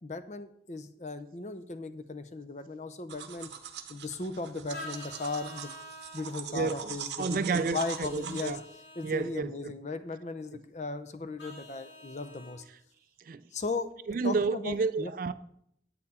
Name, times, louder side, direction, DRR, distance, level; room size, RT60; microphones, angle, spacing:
voice 1, 0.0-3.5 3.9-5.7 6.1-8.6 9.0-12.6 13.5-13.9 14.2-15.1, left 3 dB, 40° left, 0.7 m, -37 dB
sound 1, 3.1-8.5, right 8 dB, 75° right, 0.7 m, -42 dB
Vehicle horn car horn honking, 4.7-6.3 7.7-9.2 11.4-12.6, left 1 dB, 85° left, 2.8 m, -47 dB
voice 2, 6.5-8.6 9.0-9.7 13.2-13.4 14.1-15.3, right 4 dB, 50° right, 0.4 m, -31 dB
8.9 x 8.4 x 4.2 m
head